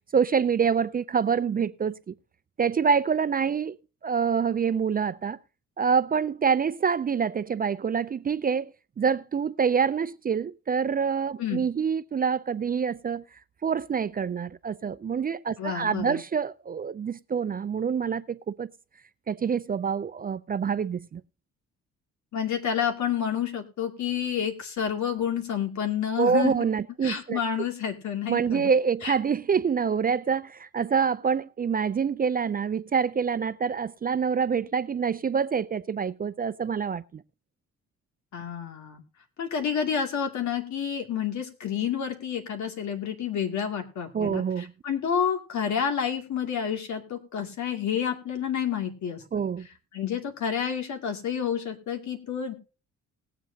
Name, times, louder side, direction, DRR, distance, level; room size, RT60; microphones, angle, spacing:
voice 1, 0.1-2.1 2.6-3.8 4.0-5.4 5.8-13.2 13.6-18.7 19.3-21.2 26.2-27.4 28.3-37.2 44.1-44.7 49.3-49.7, right 6 dB, 30° right, 0.4 m, -26 dB
voice 2, 15.6-16.2 22.3-26.5 27.0-28.7 29.0-29.1 38.3-39.0 39.4-49.2 49.9-52.5, left 8 dB, 70° left, 2.5 m, -29 dB
19.5 x 7.6 x 2.8 m
cardioid pair, 90°, 30 cm